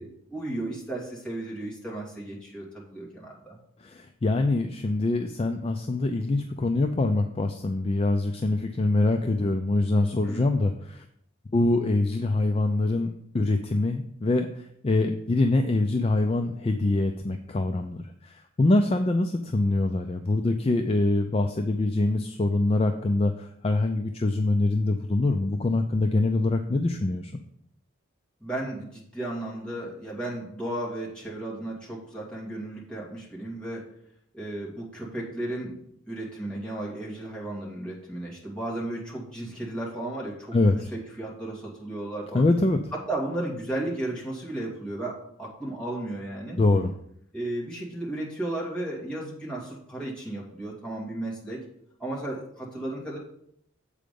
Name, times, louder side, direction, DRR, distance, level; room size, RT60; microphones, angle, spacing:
voice 1, 0.0-3.6 10.2-10.4 28.4-33.9 34.3-35.8 36.1-42.4 42.9-46.6 47.3-51.6 52.0-53.2, right 1 dB, 5° left, -5 dB, 2.1 m, -34 dB
voice 2, 3.8-11.0 11.5-13.1 13.3-27.3 40.5-40.9 42.3-42.8 46.6-46.9, left 2 dB, 30° left, 5 dB, 0.4 m, -24 dB
7.6 x 5.0 x 5.2 m, 0.71 s
head